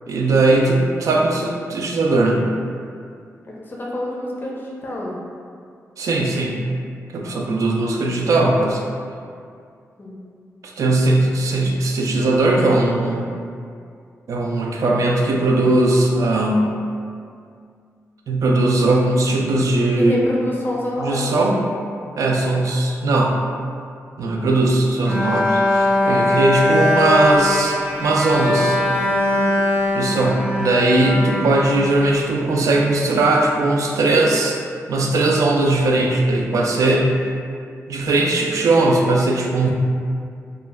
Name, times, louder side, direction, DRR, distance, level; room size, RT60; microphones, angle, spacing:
voice 1, 0.1-2.4 6.0-6.6 7.1-8.8 10.8-13.3 14.3-16.7 18.3-20.2 21.0-21.6 22.2-23.4 24.2-28.8 29.9-34.6 34.9-37.1 37.9-39.7, right 2 dB, 70° right, 0 dB, 0.4 m, -19 dB
voice 2, 3.5-5.2 10.0-10.2 20.0-21.3 26.0-26.2 29.3-29.6, left 1 dB, 35° left, -3 dB, 0.5 m, -27 dB
Bowed string instrument, 25.0-32.4, left 1 dB, 10° right, 0.8 m, -21 dB
2.2 x 2.2 x 3.3 m, 2.3 s
cardioid pair, 95°, 6 cm